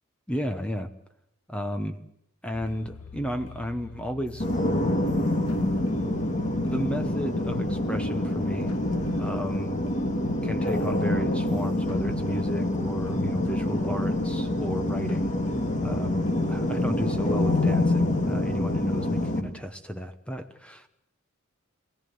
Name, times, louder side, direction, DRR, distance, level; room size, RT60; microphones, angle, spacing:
voice 1, 0.3-0.9 1.5-2.0 2.4-4.5 6.6-8.9 9.2-9.8 10.4-15.3 15.8-20.9, equal, 5° left, 8 dB, 0.9 m, -33 dB
sound 1, 2.5-18.3, left 5 dB, 85° left, 1.5 m, -46 dB
sound 2, 4.4-19.4, left 1 dB, 35° left, 2.2 m, -26 dB
24.0 x 17.0 x 9.3 m, 0.79 s
head